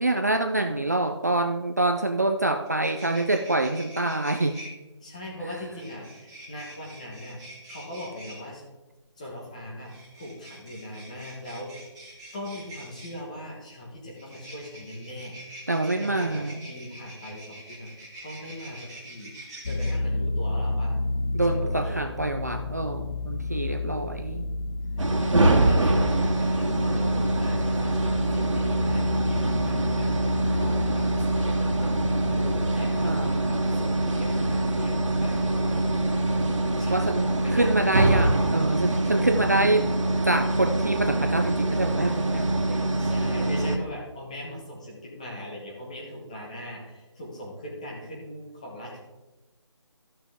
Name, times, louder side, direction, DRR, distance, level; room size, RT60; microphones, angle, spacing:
voice 1, 0.0-4.6 15.7-16.7 21.3-24.4 33.0-33.4 36.9-42.9, right 2 dB, 35° right, 5 dB, 0.4 m, -26 dB
sound 1, 2.6-4.7 5.7-8.4 9.8-13.2 14.1-19.9, right 1 dB, 10° right, 1.6 m, -45 dB
voice 2, 5.0-7.4 7.7-8.7 9.2-11.8 12.3-15.4 15.8-19.3 19.7-21.0 21.5-22.1 23.8-24.1 25.0-35.8 36.8-38.4 43.0-49.0, equal, 15° left, -2 dB, 1.2 m, -40 dB
sound 2, 19.6-38.5, left 3 dB, 80° left, 0.7 m, -32 dB
sound 3, 25.0-43.8, right 2 dB, 90° right, 2.1 m, -24 dB
14.0 x 6.0 x 3.6 m, 1.1 s
figure-of-eight pair, 175°, 16 cm